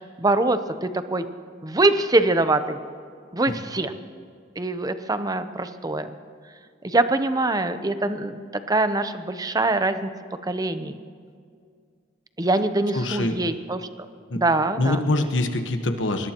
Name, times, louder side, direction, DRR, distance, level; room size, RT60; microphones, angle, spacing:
voice 1, 0.2-1.2 1.6-2.8 3.3-3.9 4.6-6.1 6.8-8.4 8.7-10.1 10.5-10.9 12.4-13.8 14.3-15.0, right 2 dB, 20° right, 10 dB, 0.7 m, -23 dB
voice 2, 12.9-13.4 14.3-14.4 14.8-16.3, left 2 dB, 70° left, 6 dB, 1.2 m, -24 dB
24.5 x 20.0 x 3.0 m, 2.2 s
head